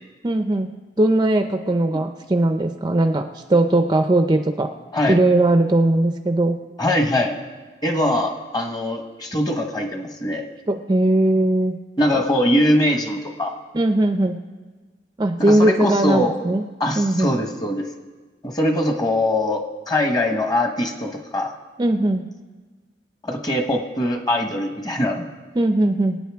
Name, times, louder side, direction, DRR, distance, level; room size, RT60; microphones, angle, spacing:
voice 1, 0.2-4.7 5.1-6.6 10.7-11.8 13.7-14.4 15.2-16.7 17.0-17.3 21.8-22.3 25.6-26.2, right 1 dB, 25° right, 6 dB, 0.5 m, -19 dB
voice 2, 6.8-7.4 7.8-10.5 12.0-13.5 15.4-16.3 16.8-17.9 18.4-21.6 23.2-25.3, left 1 dB, 25° left, 4 dB, 1.2 m, -22 dB
24.0 x 9.0 x 3.5 m, 1.3 s
head